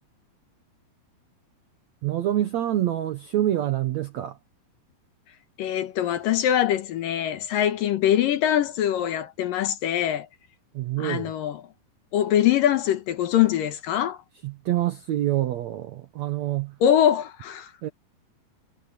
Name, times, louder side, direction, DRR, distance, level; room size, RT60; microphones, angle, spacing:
voice 1, 2.0-4.4 10.7-11.3 14.4-16.8 17.8-17.9, right 13 dB, 75° right, 1.6 m, -26 dB
voice 2, 5.6-10.3 11.0-11.6 12.1-14.2 16.8-17.7, left 11 dB, 65° left, 2.7 m, -23 dB
omnidirectional pair, 4.5 m